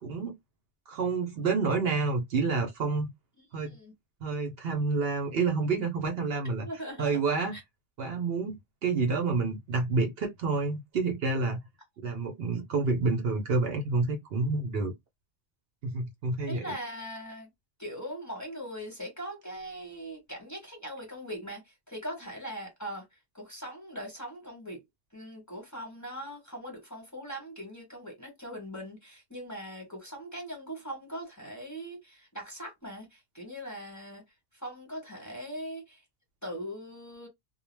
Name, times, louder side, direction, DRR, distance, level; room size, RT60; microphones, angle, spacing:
voice 1, 0.0-0.4 0.9-3.1 3.5-3.8 4.2-6.7 7.0-7.6 8.0-8.6 8.8-11.6 12.0-14.9 15.8-16.7, right 4 dB, 65° right, 0.8 m, -28 dB
voice 2, 3.4-3.9 6.6-7.2 7.5-7.6 16.5-17.5 17.8-24.8 25.1-34.2 34.5-36.0 36.4-37.3, equal, 15° left, 1.1 m, -41 dB
2.3 x 2.1 x 3.1 m
omnidirectional pair, 1.1 m